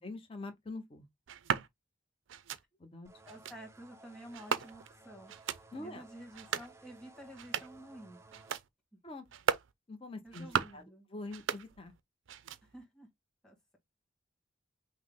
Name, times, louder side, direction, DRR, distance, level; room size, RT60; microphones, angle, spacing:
voice 1, 0.0-1.1 2.8-3.1 5.7-6.0 9.0-9.2 9.9-11.9, left 2 dB, 25° left, 0.7 m, -44 dB
sound 1, 1.3-1.7 2.3-2.6 3.3-3.6 4.3-5.0 5.3-5.6 6.3-6.7 7.3-7.8 8.3-8.7 9.3-9.7 10.3-10.8 11.3-12.0 12.3-12.8, right 7 dB, 75° right, 0.4 m, -36 dB
sound 2, 3.0-8.6, right 3 dB, 15° right, 0.4 m, -58 dB
voice 2, 3.3-8.2 10.2-11.1 12.6-13.1 13.4-13.8, right 1 dB, 5° left, 1.4 m, -51 dB
5.6 x 2.1 x 3.5 m
head